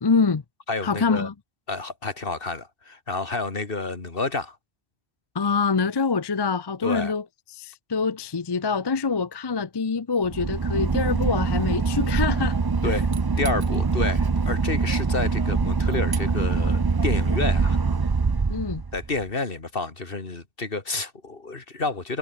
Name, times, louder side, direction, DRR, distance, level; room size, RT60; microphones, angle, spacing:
voice 1, 0.0-0.4 0.8-1.3 5.3-7.2 7.5-12.6 18.5-18.8, left 5 dB, 30° left, 0.5 m, -25 dB
voice 2, 0.7-1.3 1.7-4.6 6.8-7.1 12.8-13.1 13.4-17.8 18.9-22.2, left 3 dB, 55° left, 2.6 m, -29 dB
Boat Water vehicle / Engine, 10.2-19.2, right 4 dB, 25° right, 0.5 m, -23 dB
omnidirectional pair, 1.1 m